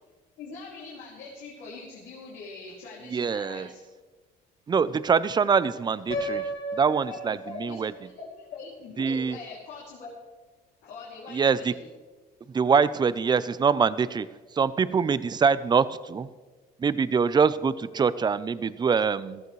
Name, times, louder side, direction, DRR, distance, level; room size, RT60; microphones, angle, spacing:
voice 1, 0.4-3.8 7.1-10.1 10.8-11.9, left 4 dB, 80° left, -5 dB, 2.9 m, -42 dB
voice 2, 3.1-3.7 4.7-7.9 9.0-9.4 11.3-11.7 12.5-14.3 14.5-16.3 16.8-19.4, right 6 dB, 25° right, 16 dB, 0.5 m, -24 dB
Piano, 6.1-8.1, right 1 dB, 55° left, 4.0 m, -34 dB
15.0 x 14.0 x 3.2 m, 1.3 s
cardioid pair, 110°, 17 cm